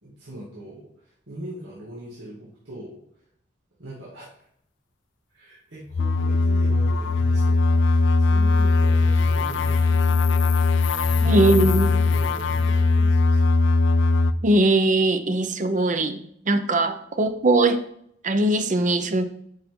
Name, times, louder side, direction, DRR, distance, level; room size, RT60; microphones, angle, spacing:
voice 1, 0.0-3.0 3.8-4.3 5.3-10.5 11.0-13.6, right 1 dB, 85° right, -8 dB, 2.2 m, -40 dB
sound 1, 5.9-14.3, left 3 dB, 85° left, 0.5 m, -20 dB
voice 2, 11.2-11.9 14.4-17.8 18.2-19.3, right 2 dB, 45° right, 9 dB, 0.6 m, -21 dB
8.7 x 5.8 x 3.7 m, 0.69 s
head